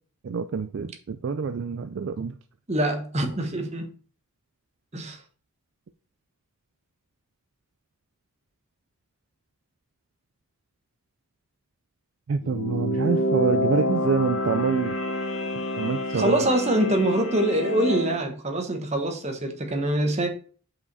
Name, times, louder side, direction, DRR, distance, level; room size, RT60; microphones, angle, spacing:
voice 1, 0.2-2.3 12.3-15.0 15.7-16.4, right 5 dB, 60° right, 0.4 m, -26 dB
voice 2, 2.7-3.9 4.9-5.2 16.1-20.3, right 1 dB, 30° right, 1.1 m, -24 dB
sound 1, 12.4-18.2, left 1 dB, 80° left, 1.0 m, -28 dB
5.6 x 5.0 x 4.0 m
head